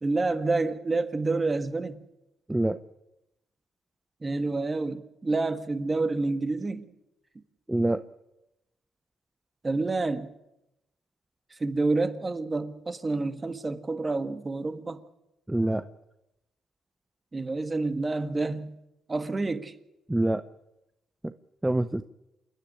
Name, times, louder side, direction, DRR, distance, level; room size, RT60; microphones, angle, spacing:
voice 1, 0.0-2.0 4.2-6.9 9.6-10.3 11.6-15.0 17.3-18.8 19.1-19.7, right 3 dB, 25° right, 1.6 m, -28 dB
voice 2, 2.5-2.8 7.7-8.0 15.5-15.8 20.1-20.4 21.2-21.3 21.6-22.0, right 1 dB, 10° right, 0.7 m, -25 dB
27.5 x 10.0 x 10.0 m
cardioid pair, 90°, 0 cm